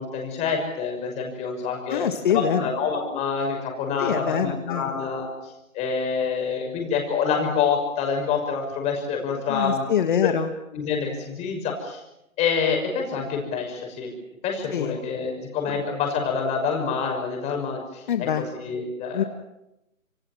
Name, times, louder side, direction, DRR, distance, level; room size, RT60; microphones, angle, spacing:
voice 1, 0.0-2.0 2.3-5.3 5.7-9.8 10.2-10.3 10.7-12.0 12.4-14.1 14.4-18.3 18.6-19.3, left 5 dB, 15° left, 2 dB, 6.2 m, -27 dB
voice 2, 1.9-2.7 4.0-5.0 9.5-10.5 14.7-15.0 18.1-18.5 19.1-19.2, left 8 dB, 35° left, 8 dB, 1.8 m, -24 dB
27.5 x 25.0 x 7.6 m, 0.88 s
hypercardioid pair, 155°, 41 cm